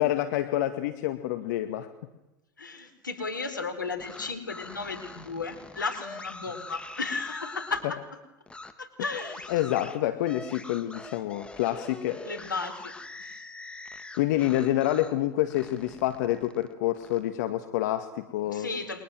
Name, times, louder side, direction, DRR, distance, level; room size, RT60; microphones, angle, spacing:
voice 1, 0.0-1.9 9.5-12.2 14.2-18.7, left 14 dB, 65° left, 8 dB, 2.0 m, -27 dB
voice 2, 2.6-8.0 8.8-9.5 12.3-12.9 13.2-13.4 18.5-19.0, left 4 dB, 90° left, 8 dB, 4.6 m, -34 dB
sound 1, 3.9-7.9 8.5-8.7 9.1-15.2 15.5-17.2, left 3 dB, 10° left, 3.2 m, -44 dB
30.0 x 23.5 x 7.8 m, 0.99 s
hypercardioid pair, 85°, 10 cm